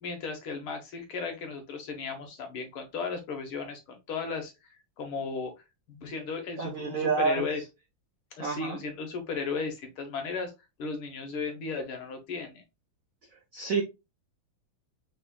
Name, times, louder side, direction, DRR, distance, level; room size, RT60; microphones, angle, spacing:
voice 1, 0.0-4.7 5.0-5.5 5.9-7.6 8.4-10.5 10.8-12.6, left 4 dB, 70° left, 4 dB, 2.0 m, -35 dB
voice 2, 6.6-7.5 8.4-8.8 13.5-13.8, right 4 dB, 70° right, 3 dB, 0.7 m, -28 dB
5.1 x 4.2 x 2.2 m, 0.24 s
omnidirectional pair, 2.4 m